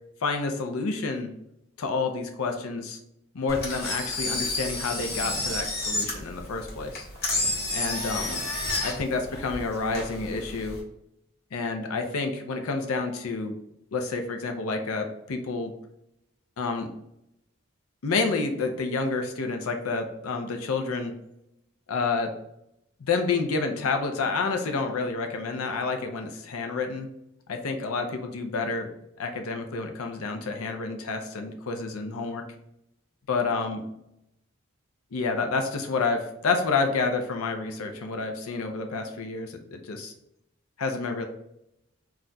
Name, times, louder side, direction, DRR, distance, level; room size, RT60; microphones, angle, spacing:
voice 1, 0.2-1.3 1.8-3.0 3.3-7.1 7.7-8.4 8.8-10.8 11.5-13.6 13.9-15.7 16.6-16.9 18.0-21.1 21.9-22.3 23.0-27.1 27.5-28.9 29.2-32.4 33.3-33.8 35.1-40.1 40.8-41.3, left 4 dB, 85° left, 5 dB, 0.5 m, -29 dB
Engine, 3.5-10.8, left 2 dB, 45° left, 0.9 m, -30 dB
2.4 x 2.2 x 3.9 m, 0.82 s
head